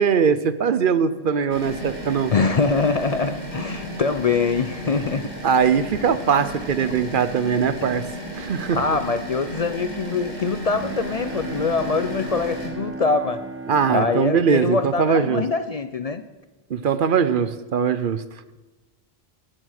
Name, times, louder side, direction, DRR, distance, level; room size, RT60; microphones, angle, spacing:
voice 1, 0.0-2.3 5.4-8.1 8.4-9.0 13.7-15.4 16.7-18.2, right 6 dB, 60° right, 13 dB, 0.8 m, -21 dB
sound 1, 1.5-12.7, equal, 45° right, 3.3 m, -34 dB
voice 2, 2.3-5.3 8.7-13.4 13.9-16.2, left 4 dB, 45° left, 10 dB, 0.6 m, -23 dB
Bowed string instrument, 10.6-15.8, right 2 dB, 15° right, 0.8 m, -36 dB
18.5 x 7.6 x 6.5 m, 1.2 s
omnidirectional pair, 1.1 m